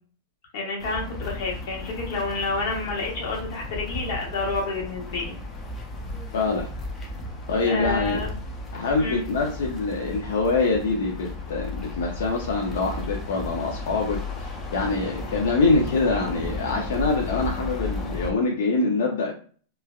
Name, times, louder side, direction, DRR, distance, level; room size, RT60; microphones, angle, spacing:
voice 1, 0.5-5.3 7.6-8.4 9.0-9.2, left 3 dB, 50° left, -2 dB, 1.0 m, -29 dB
sound 1, 0.8-18.3, left 2 dB, 10° left, 0.3 m, -34 dB
voice 2, 6.3-6.7 7.5-8.2 8.7-19.3, left 3 dB, 75° left, 0 dB, 0.5 m, -25 dB
3.1 x 2.2 x 2.3 m, 0.44 s
supercardioid pair, 180°, 0 cm